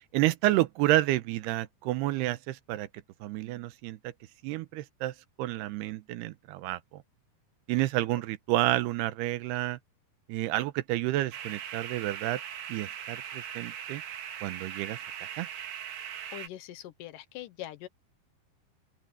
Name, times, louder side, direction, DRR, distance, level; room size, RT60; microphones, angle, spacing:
voice 1, 0.1-2.9 3.2-4.0 4.4-5.1 5.4-6.8 7.7-9.8 10.3-12.4 12.7-14.0 14.4-15.0 15.4-15.5, right 16 dB, 90° right, 2.8 m, -29 dB
sound 1, 11.3-16.5, right 9 dB, 65° right, 3.0 m, -40 dB
voice 2, 16.3-17.9, left 13 dB, 70° left, 2.3 m, -42 dB
open air
omnidirectional pair, 4.7 m